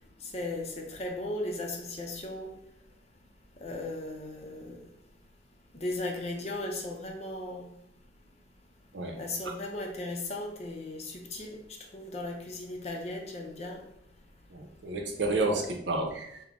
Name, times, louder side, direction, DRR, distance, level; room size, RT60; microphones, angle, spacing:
voice 1, 0.2-2.5 3.6-4.9 5.7-7.7 9.2-13.8 15.5-15.6, left 2 dB, 35° left, 0.6 m, -37 dB
voice 2, 14.5-16.4, right 2 dB, 80° right, 0.7 m, -30 dB
3.7 x 2.1 x 3.4 m
head